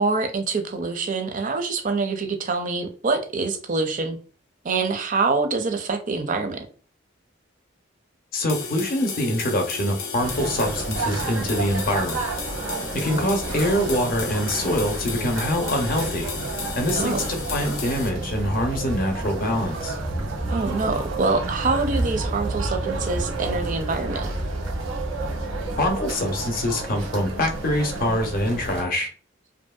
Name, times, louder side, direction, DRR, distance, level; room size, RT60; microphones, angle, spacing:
voice 1, 0.0-4.2 4.6-6.7 12.9-13.2 17.0-17.3 20.5-24.3, right 3 dB, 40° right, 0.4 m, -25 dB
voice 2, 8.3-12.2 12.9-16.3 16.8-20.0 25.8-29.1, left 1 dB, 45° left, 0.6 m, -24 dB
sound 1, 8.5-18.1, left 5 dB, 85° left, 0.6 m, -34 dB
sound 2, 10.2-28.8, right 2 dB, 90° right, 0.8 m, -30 dB
2.7 x 2.6 x 2.3 m
head